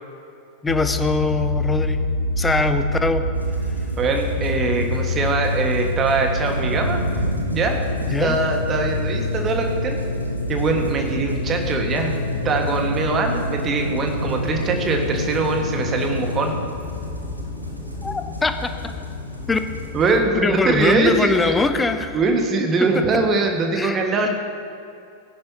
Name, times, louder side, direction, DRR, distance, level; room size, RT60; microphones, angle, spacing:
voice 1, 0.6-2.0 2.4-3.3 8.1-8.4 18.0-18.7 19.5-19.6 20.3-22.2 22.9-23.0 23.8-24.0, left 3 dB, 10° left, 9 dB, 0.8 m, -22 dB
sound 1, 0.7-16.7, left 1 dB, 80° left, 0.7 m, -26 dB
sound 2, 3.3-20.2, equal, 90° right, 1.0 m, -34 dB
voice 2, 4.0-7.0 7.5-7.8 8.2-10.0 10.5-12.2 12.4-16.5 19.9-21.5 22.1-24.3, right 3 dB, 25° right, 3 dB, 1.7 m, -22 dB
sound 3, 16.7-22.1, left 4 dB, 40° left, 2.8 m, -35 dB
19.0 x 10.5 x 2.9 m, 2.5 s
figure-of-eight pair, 90°, 0 cm